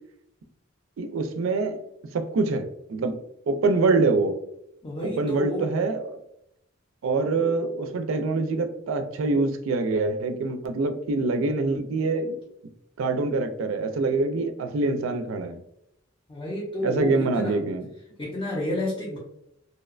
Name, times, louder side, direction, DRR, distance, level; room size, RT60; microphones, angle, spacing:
voice 1, 1.0-1.8 2.1-2.6 2.9-3.2 3.5-4.4 5.0-6.2 7.0-12.4 13.0-15.6 16.8-17.9, right 3 dB, 75° right, 6 dB, 0.4 m, -25 dB
voice 2, 4.8-5.7 16.3-17.6 18.2-19.2, left 1 dB, 25° left, -4 dB, 0.4 m, -30 dB
2.7 x 2.1 x 2.3 m, 0.79 s
head